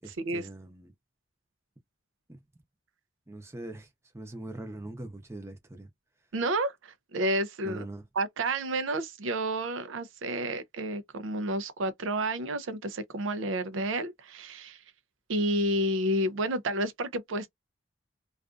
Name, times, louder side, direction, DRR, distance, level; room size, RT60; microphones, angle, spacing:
voice 1, 0.0-0.9 2.3-2.4 3.3-5.9 7.6-8.1, right 2 dB, 15° right, 0.6 m, -42 dB
voice 2, 6.3-7.8 8.2-14.8 15.3-17.5, right 1 dB, 90° right, 0.5 m, -30 dB
2.4 x 2.4 x 2.3 m
head